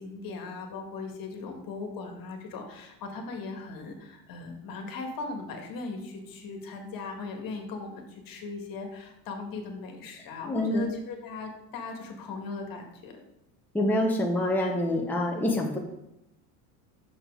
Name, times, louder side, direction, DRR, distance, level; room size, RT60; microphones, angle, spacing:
voice 1, 0.0-13.2, left 4 dB, 50° left, 3 dB, 1.9 m, -38 dB
voice 2, 10.4-10.9 13.7-15.8, left 1 dB, 5° left, -1 dB, 1.1 m, -26 dB
6.5 x 6.1 x 4.7 m, 0.87 s
supercardioid pair, 105°, 45 cm